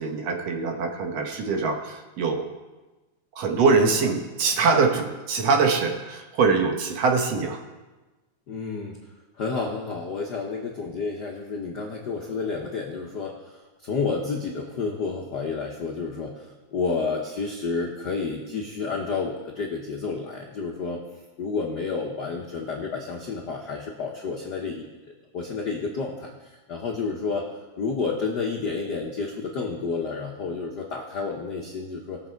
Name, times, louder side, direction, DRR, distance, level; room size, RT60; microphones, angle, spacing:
voice 1, 0.0-2.5 3.4-7.6, right 4 dB, 65° right, 4 dB, 2.0 m, -23 dB
voice 2, 8.5-9.0 9.4-21.0 21.4-24.9 25.3-27.5 27.8-32.2, left 4 dB, 75° left, 0 dB, 0.9 m, -30 dB
18.5 x 7.1 x 4.5 m, 1.2 s
omnidirectional pair, 3.4 m